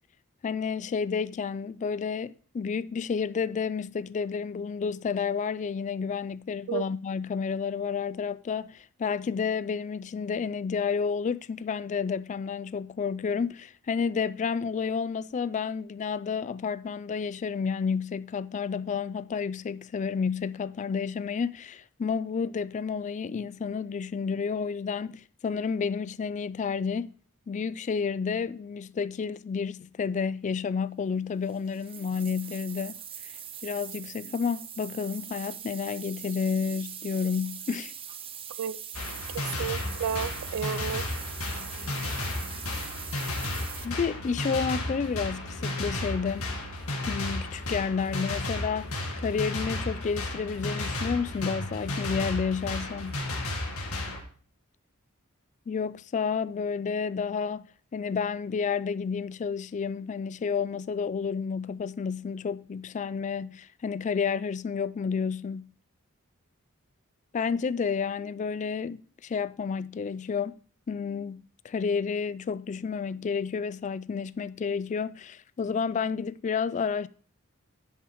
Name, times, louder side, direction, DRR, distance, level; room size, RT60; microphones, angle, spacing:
voice 1, 0.4-27.1 27.5-33.0 33.6-37.9 43.8-46.5 47.1-53.2 55.7-57.7 57.9-65.7 67.3-70.6 70.9-77.1, left 6 dB, 35° left, 0.3 m, -30 dB
sound 1, 31.4-43.9, right 9 dB, 25° right, 0.6 m, -42 dB
sound 2, 38.9-54.2, left 2 dB, 85° left, 2.0 m, -33 dB
voice 2, 39.3-41.0, right 8 dB, 75° right, 0.3 m, -32 dB
10.0 x 7.9 x 3.0 m
head